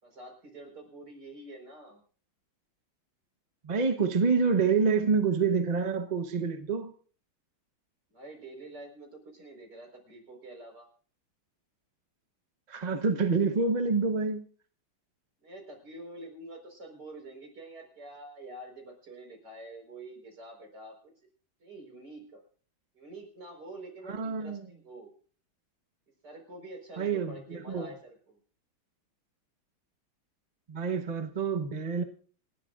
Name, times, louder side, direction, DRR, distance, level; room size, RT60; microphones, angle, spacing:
voice 1, 0.0-2.0 8.1-10.9 15.4-21.1 21.6-22.4 22.9-25.1 26.2-28.4, right 2 dB, 50° right, 5.2 m, -47 dB
voice 2, 3.6-6.9 12.7-14.4 24.1-24.7 27.0-27.9 30.7-32.0, right 5 dB, 30° right, 0.8 m, -27 dB
28.0 x 12.5 x 2.5 m
omnidirectional pair, 2.3 m